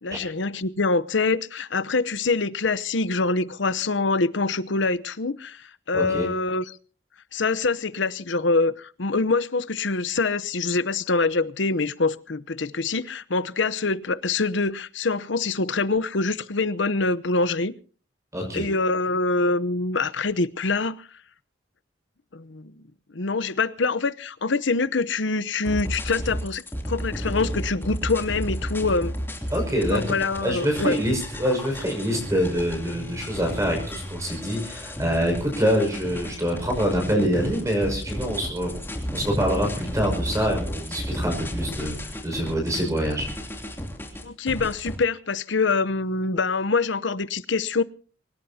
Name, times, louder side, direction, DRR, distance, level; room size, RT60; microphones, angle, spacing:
voice 1, 0.0-5.6 5.9-6.8 7.3-17.7 18.5-21.1 22.3-22.7 23.1-29.1 29.9-31.0 44.2-47.8, left 3 dB, 75° left, 0.9 m, -25 dB
voice 2, 5.9-6.3 18.3-18.6 29.5-38.8 39.1-43.3, equal, 15° right, 6.0 m, -25 dB
sound 1, 25.6-45.0, equal, 10° left, 3.0 m, -33 dB
23.5 x 19.0 x 2.8 m
head